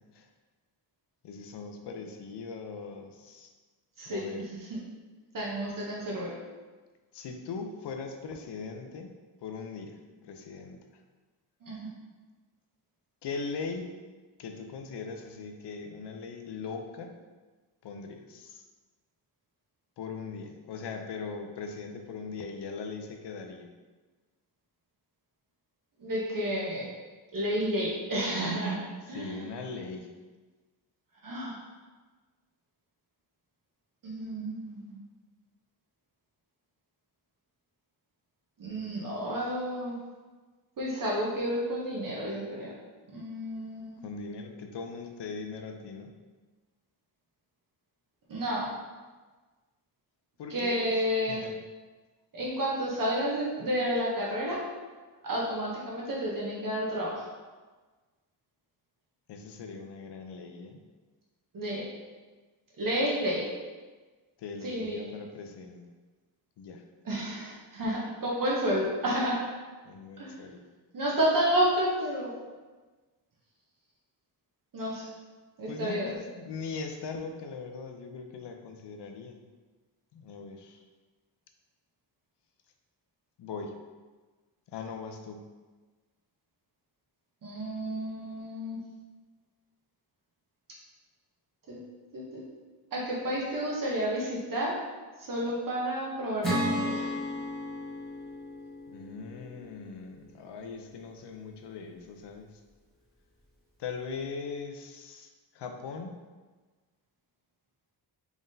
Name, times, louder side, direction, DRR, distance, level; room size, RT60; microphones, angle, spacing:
voice 1, 1.2-3.5 4.1-4.5 7.1-10.8 13.2-14.0 14.4-17.2 17.8-18.6 20.0-23.7 29.1-30.2 44.0-46.1 50.4-50.9 51.3-51.6 59.3-60.8 64.4-65.8 66.6-66.8 69.8-70.6 75.7-79.4 80.1-80.8 83.4-83.7 84.7-85.4 98.9-102.6 103.8-106.3, left 4 dB, 75° left, 4 dB, 0.6 m, -40 dB
voice 2, 5.3-6.4 11.6-11.9 26.0-26.9 27.3-28.8 29.1-29.4 31.2-31.6 34.0-35.0 38.6-40.0 40.8-42.7 43.1-44.0 48.3-48.7 50.5-51.4 52.3-54.6 55.2-57.3 61.5-61.9 62.8-63.4 64.6-65.1 67.0-69.4 70.2-70.4 70.9-72.3 74.7-75.1 75.6-76.1 87.4-88.8 91.7-91.8 92.1-92.4 92.9-94.8 95.2-97.1, equal, 50° right, -4 dB, 0.8 m, -31 dB
Acoustic guitar / Strum, 96.4-99.9, left 1 dB, ahead, 1.1 m, -33 dB
3.7 x 3.5 x 2.6 m, 1.3 s
wide cardioid pair, 160°, 42 cm